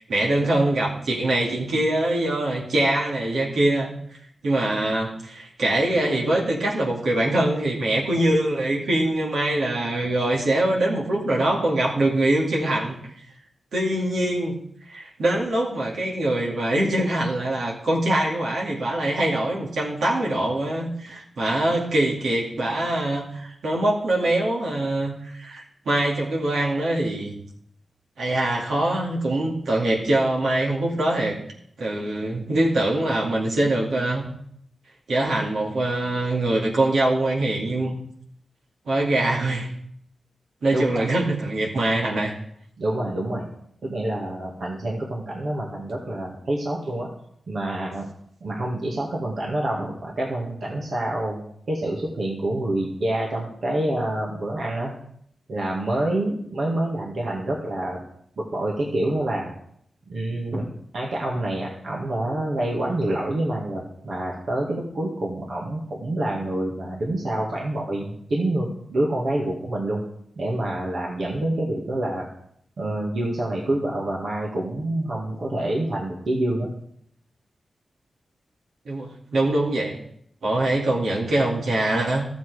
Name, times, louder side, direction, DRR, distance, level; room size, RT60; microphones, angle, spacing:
voice 1, 0.1-3.9 4.4-13.0 13.7-14.6 14.9-27.3 28.2-31.4 31.8-34.3 35.1-38.0 38.9-39.7 40.6-42.3 78.9-80.0 80.4-82.3, right 1 dB, 85° right, -2 dB, 2.4 m, -23 dB
voice 2, 40.7-41.0 42.8-43.5 43.8-47.1 47.5-48.1 48.4-54.9 55.5-58.0 58.4-59.5 60.1-60.7 60.9-70.0 70.4-72.3 72.8-76.7, right 1 dB, 70° right, -2 dB, 1.9 m, -27 dB
13.0 x 7.2 x 4.9 m, 0.70 s
cardioid pair, 60°, 0 cm